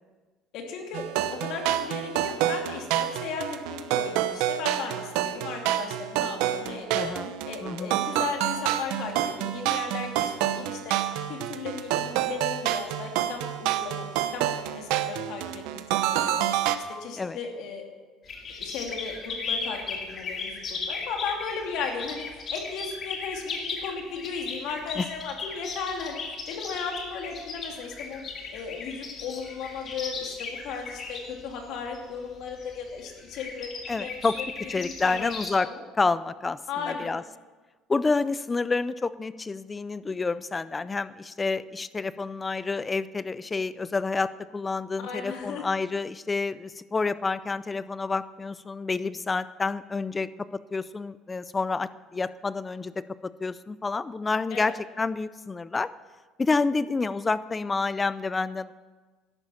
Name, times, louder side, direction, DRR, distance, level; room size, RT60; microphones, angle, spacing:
voice 1, 0.5-1.0 1.3-7.1 7.4-10.9 11.3-14.1 14.3-16.5 16.9-17.9 18.6-26.2 26.5-28.2 28.5-34.5 34.8-35.3 35.6-35.8 36.7-37.1 45.0-45.7 54.5-54.8, left 5 dB, 65° left, 2 dB, 2.7 m, -36 dB
sound 1, 0.9-16.8, right 12 dB, 90° right, 0.9 m, -28 dB
voice 2, 6.9-7.3 7.6-8.0 17.2-17.4 25.0-25.1 33.9-34.4 34.7-35.7 36.0-36.6 36.9-37.2 37.9-55.9 56.4-58.7, left 4 dB, 15° left, 16 dB, 0.4 m, -29 dB
sound 2, 18.2-35.5, left 4 dB, 35° left, 2.5 m, -37 dB
12.5 x 10.5 x 7.0 m, 1.3 s
cardioid pair, 145°, 0 cm